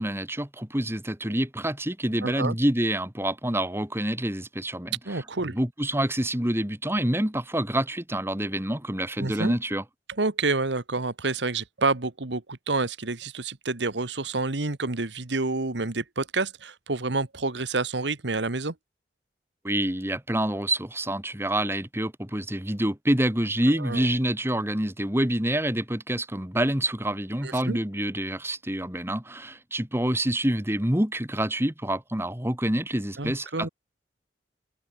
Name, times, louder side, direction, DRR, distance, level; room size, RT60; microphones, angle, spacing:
voice 1, 0.0-9.8 19.6-33.7, right 1 dB, 15° right, 2.6 m, -27 dB
voice 2, 2.2-2.5 5.0-5.6 9.2-9.5 10.2-18.7 23.8-24.0 27.4-27.8 33.2-33.7, right 3 dB, 80° right, 1.6 m, -28 dB
head